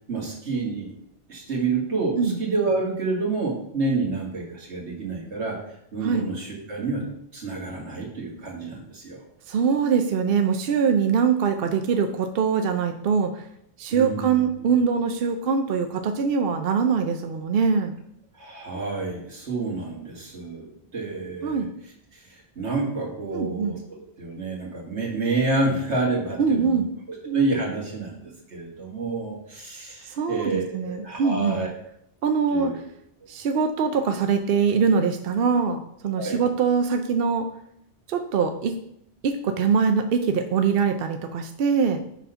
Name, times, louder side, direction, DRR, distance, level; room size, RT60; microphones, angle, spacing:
voice 1, 0.1-1.0 1.3-5.6 5.9-7.1 7.3-9.2 13.9-14.4 18.4-20.7 20.9-21.6 22.1-23.8 24.2-26.8 27.2-31.7 32.5-32.8 36.2-36.4, right 3 dB, 85° right, -2 dB, 2.1 m, -28 dB
voice 2, 9.5-13.4 13.8-18.0 21.4-21.7 23.3-23.8 26.4-26.9 30.1-31.6 32.2-32.8 33.3-37.5 38.1-38.8 39.2-42.0, right 6 dB, 65° right, 6 dB, 0.7 m, -23 dB
6.2 x 4.2 x 5.5 m, 0.75 s
omnidirectional pair, 1.1 m